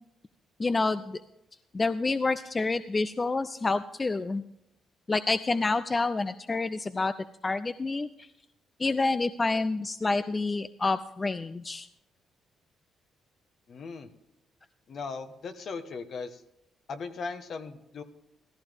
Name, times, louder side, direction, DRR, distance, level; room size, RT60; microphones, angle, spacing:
voice 1, 0.6-1.2 1.7-4.4 5.1-7.1 7.4-8.3 8.8-11.9, left 3 dB, 25° left, 12 dB, 0.4 m, -28 dB
voice 2, 13.7-14.1 14.9-16.4 16.9-18.0, left 4 dB, 55° left, 8 dB, 1.3 m, -38 dB
14.5 x 14.0 x 3.6 m, 0.88 s
cardioid pair, 90°, 0 cm